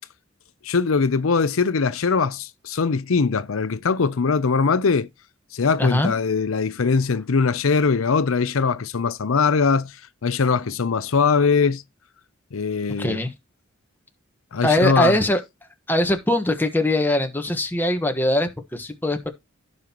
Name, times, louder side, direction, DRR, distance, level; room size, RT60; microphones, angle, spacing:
voice 1, 0.6-5.1 5.5-10.0 10.2-11.8 12.5-13.2 14.5-15.2, left 5 dB, 90° left, 0.6 m, -21 dB
voice 2, 5.8-6.1 13.0-13.3 14.6-15.4 15.9-19.3, left 1 dB, 10° left, 1.3 m, -21 dB
16.0 x 5.6 x 3.0 m
head